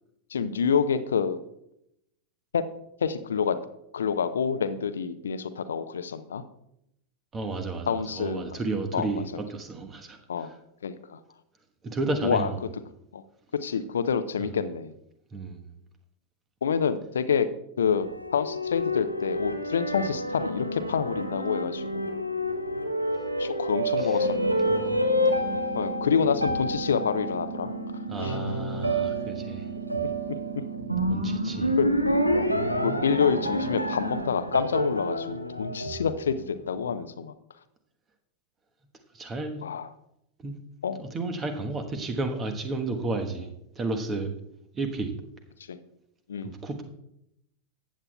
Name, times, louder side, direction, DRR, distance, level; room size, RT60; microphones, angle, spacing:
voice 1, 0.3-1.4 2.5-2.6 3.0-3.6 3.9-6.4 7.9-8.6 8.9-9.1 10.3-10.5 10.8-11.2 12.2-12.5 13.1-13.2 13.6-14.9 16.6-17.5 17.8-22.1 23.4-24.8 25.7-27.7 28.2-28.5 31.8-31.9 32.3-32.5 32.8-37.3 39.6-39.9 40.8-41.0 45.7-45.8 46.3-46.5, left 6 dB, 65° left, 12 dB, 0.6 m, -27 dB
voice 2, 7.3-10.5 11.8-12.6 14.4-14.5 15.3-15.6 24.0-24.3 24.7-25.0 28.1-29.7 31.1-31.8 39.1-39.6 40.4-40.5 41.0-44.3 44.7-45.1 46.4-46.8, right 3 dB, 20° right, 6 dB, 1.2 m, -32 dB
sound 1, 18.0-36.5, equal, 90° right, 0.9 m, -29 dB
sound 2, 24.2-34.2, right 8 dB, 50° right, 0.8 m, -38 dB
14.5 x 8.8 x 2.3 m, 0.80 s
figure-of-eight pair, 90°, 0 cm